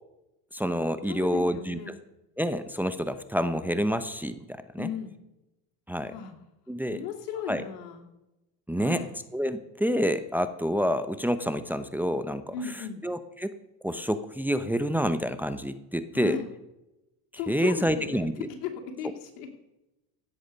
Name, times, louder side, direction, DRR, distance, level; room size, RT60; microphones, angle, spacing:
voice 1, 0.5-1.9 2.4-4.9 5.9-6.1 6.7-7.0 7.5-7.6 8.7-9.0 9.3-12.5 13.0-13.5 13.8-16.4 17.5-18.5, equal, 5° right, 11 dB, 0.8 m, -28 dB
voice 2, 1.1-1.9 4.8-5.1 6.1-6.3 6.9-8.1 8.8-9.1 12.5-13.0 16.1-16.5 17.4-18.7 19.0-19.5, left 7 dB, 85° left, 4 dB, 2.7 m, -36 dB
16.5 x 7.9 x 5.4 m, 0.94 s
supercardioid pair, 95°, 46 cm